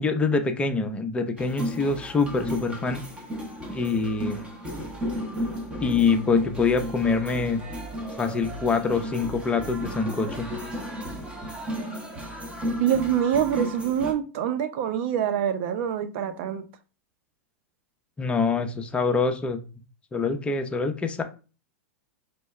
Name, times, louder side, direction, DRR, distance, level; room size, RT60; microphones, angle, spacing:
voice 1, 0.0-3.0 3.7-4.4 5.8-7.6 8.2-10.5 18.2-19.6 20.1-21.2, left 4 dB, 15° left, 0.6 m, -25 dB
sound 1, 1.4-14.1, equal, 15° right, 0.9 m, -34 dB
voice 2, 12.8-16.6, right 9 dB, 55° right, 0.6 m, -25 dB
4.5 x 2.2 x 3.1 m
hypercardioid pair, 115°, 8 cm